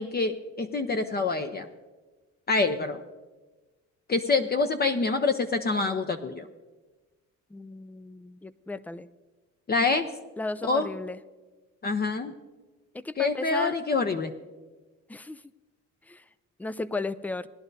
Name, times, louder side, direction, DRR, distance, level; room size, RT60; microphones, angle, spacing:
voice 1, 0.0-1.7 2.5-3.0 4.1-6.5 9.7-10.1 10.6-10.9 11.8-12.3 13.2-14.3, left 3 dB, 30° left, 7 dB, 0.7 m, -26 dB
voice 2, 7.5-9.1 10.4-11.2 12.9-13.8 15.1-15.4 16.1-16.2 16.6-17.5, left 3 dB, 5° left, 16 dB, 0.3 m, -35 dB
19.0 x 11.0 x 2.7 m, 1.2 s
cardioid pair, 90°, 30 cm